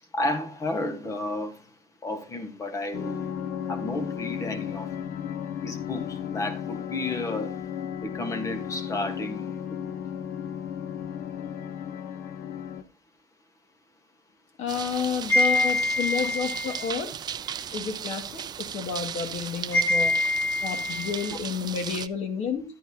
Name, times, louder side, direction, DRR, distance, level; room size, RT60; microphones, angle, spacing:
voice 1, 0.1-1.7 2.0-3.3 3.7-4.9 5.6-7.7 8.0-9.8 15.3-16.9 17.5-17.7 19.7-21.4, left 1 dB, 20° left, 1.4 m, -29 dB
sound 1, 2.9-12.8, left 8 dB, 80° left, 1.0 m, -34 dB
voice 2, 14.6-17.1 17.7-20.1 20.6-22.6, left 6 dB, 55° left, 2.1 m, -30 dB
sound 2, 14.7-22.1, right 9 dB, 30° right, 0.4 m, -36 dB
11.5 x 10.0 x 2.8 m
cardioid pair, 155°, 14 cm